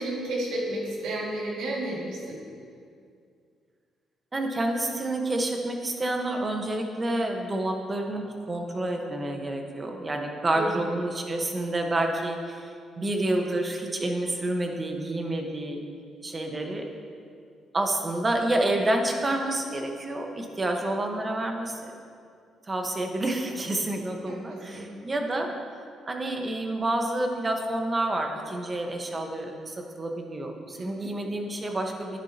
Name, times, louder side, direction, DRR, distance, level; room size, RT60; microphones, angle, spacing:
voice 1, 0.0-2.4 10.5-10.7 24.3-24.9 30.8-31.1, right 1 dB, 85° right, -3 dB, 2.2 m, -32 dB
voice 2, 4.3-15.8 16.2-16.8 17.7-21.9 22.7-25.5 26.1-32.2, right 1 dB, 25° right, 2 dB, 1.2 m, -29 dB
10.5 x 9.9 x 2.9 m, 2.3 s
cardioid pair, 90°, 0 cm